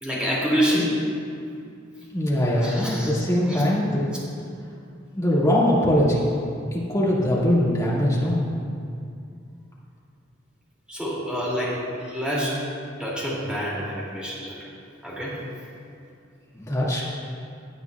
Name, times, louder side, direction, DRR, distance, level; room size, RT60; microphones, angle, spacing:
voice 1, 0.0-0.9 2.6-3.1 3.5-3.6 10.9-12.6 13.0-14.6 15.0-15.4, equal, 5° right, -7 dB, 2.5 m, -27 dB
voice 2, 2.1-4.0 5.1-6.3 6.7-8.5 16.5-17.0, equal, 15° left, -6 dB, 2.0 m, -22 dB
16.5 x 9.3 x 2.4 m, 2.4 s
head